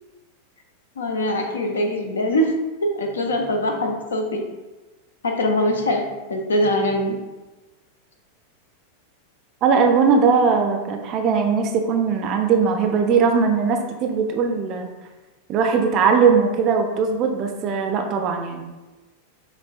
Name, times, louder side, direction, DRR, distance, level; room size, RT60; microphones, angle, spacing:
voice 1, 1.0-4.4 5.2-7.2, left 1 dB, 70° left, 4 dB, 0.5 m, -23 dB
voice 2, 9.6-14.9 15.5-18.6, right 5 dB, 35° right, 4 dB, 0.4 m, -19 dB
6.3 x 2.1 x 2.4 m, 1.1 s
figure-of-eight pair, 90°, 0 cm